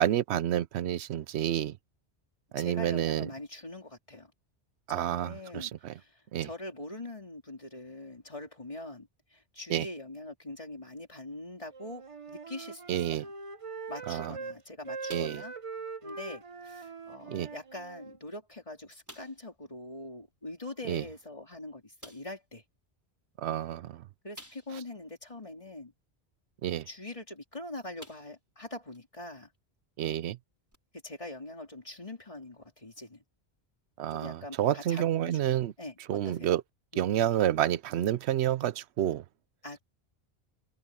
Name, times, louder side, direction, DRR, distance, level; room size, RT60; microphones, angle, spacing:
voice 1, 0.0-1.8 2.5-3.3 4.9-5.9 6.3-6.5 9.7-9.9 12.9-13.2 14.1-14.3 15.1-15.4 17.3-17.5 20.9-21.0 23.4-24.0 26.6-26.9 30.0-30.4 34.0-35.7 36.1-36.6 37.0-39.2, right 11 dB, 75° right, 0.9 m, -29 dB
voice 2, 2.6-4.3 4.9-13.3 13.9-15.5 16.0-22.6 24.2-25.9 26.9-29.5 30.9-33.2 34.1-36.6 36.9-37.1 39.6-39.8, left 2 dB, 30° left, 3.2 m, -43 dB
Wind instrument woodwind instrument, 11.7-14.6 14.9-18.2, right 4 dB, 30° right, 0.9 m, -42 dB
sound 1, 15.1-15.8 16.1-16.3 16.8-16.9 17.8-17.9 18.3-18.4 19.1-19.5 21.1-21.2 22.0-22.4 24.3-24.9 25.4-25.5 27.4-27.5 28.0-28.5 28.9-29.0 30.7-30.8, equal, 15° right, 4.6 m, -51 dB
omnidirectional pair, 1.1 m